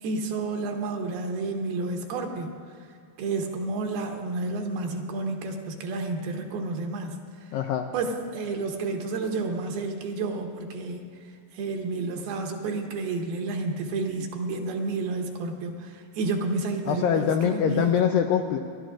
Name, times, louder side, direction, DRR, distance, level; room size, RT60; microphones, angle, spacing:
voice 1, 0.0-2.5 3.2-7.5 7.9-11.0 11.5-17.9, right 3 dB, 75° right, 3 dB, 2.7 m, -30 dB
voice 2, 7.5-7.9 16.9-18.6, left 8 dB, 85° left, 4 dB, 2.0 m, -23 dB
28.5 x 11.5 x 2.5 m, 2.3 s
omnidirectional pair, 4.5 m